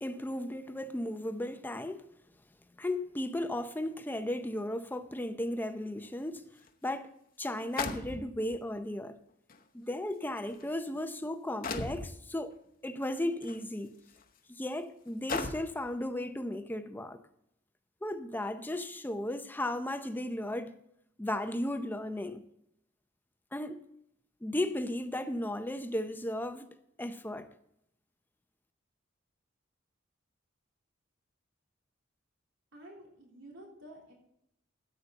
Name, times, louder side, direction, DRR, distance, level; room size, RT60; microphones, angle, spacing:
voice 1, 0.0-2.1 2.8-6.5 6.8-7.1 7.4-9.2 9.7-12.6 12.8-13.9 14.5-17.2 18.0-20.7 21.2-22.5 23.5-23.8 24.4-27.5, left 1 dB, 10° left, 0.6 m, -35 dB
sound 1, 6.7-6.8 7.8-8.6 9.5-9.6 10.4-10.6 11.6-12.1 13.4-13.6 14.2-14.3 15.3-15.8, left 4 dB, 45° left, 0.9 m, -36 dB
voice 2, 32.7-34.1, right 1 dB, 85° right, 3.4 m, -51 dB
14.5 x 8.1 x 4.0 m
head